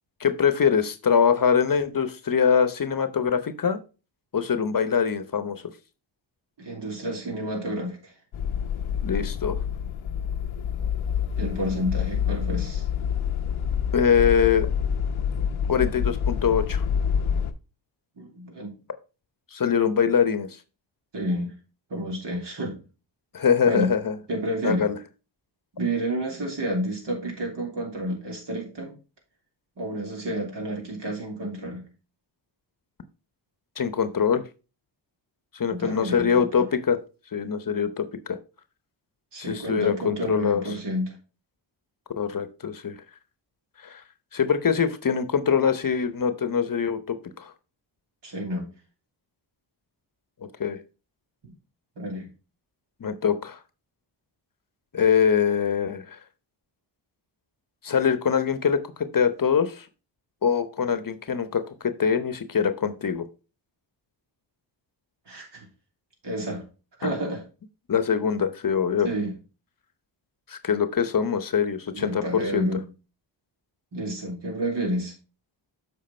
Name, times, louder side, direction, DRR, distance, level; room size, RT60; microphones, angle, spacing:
voice 1, 0.2-3.8 4.3-5.6 9.0-9.6 13.9-14.7 15.7-16.8 19.5-20.5 23.3-24.2 24.6-25.0 33.8-34.4 35.5-37.0 37.3-38.4 39.4-40.6 42.2-42.9 43.8-44.0 44.3-47.5 50.6-50.8 53.0-53.6 54.9-56.2 57.8-59.9 60.4-63.2 67.0-67.1 67.9-69.1 70.5-72.7, left 7 dB, 45° left, 11 dB, 0.9 m, -23 dB
voice 2, 6.6-8.1 11.4-12.8 18.2-18.7 21.1-21.5 21.9-22.8 23.6-23.9 24.3-24.9 25.8-28.9 29.8-31.8 35.7-36.6 39.3-41.1 48.2-48.7 51.4-51.5 52.0-52.3 65.3-65.7 66.2-66.6 67.0-67.4 69.0-69.3 71.9-72.8 73.9-75.1, right 1 dB, 60° right, 0 dB, 3.3 m, -30 dB
sound 1, 8.3-17.5, left 8 dB, 90° left, 0.8 m, -27 dB
7.6 x 5.0 x 4.3 m, 0.33 s
cardioid pair, 70°, 47 cm